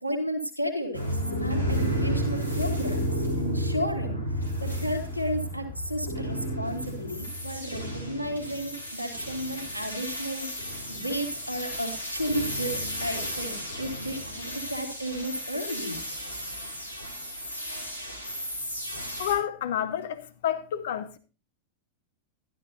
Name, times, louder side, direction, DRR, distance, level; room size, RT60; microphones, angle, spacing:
voice 1, 0.0-16.0, equal, 90° right, 2.1 m, -33 dB
sound 1, 0.9-19.3, equal, 85° left, 2.8 m, -32 dB
voice 2, 19.2-21.2, left 10 dB, 60° left, 0.9 m, -29 dB
13.0 x 12.0 x 2.6 m
figure-of-eight pair, 90°, 0 cm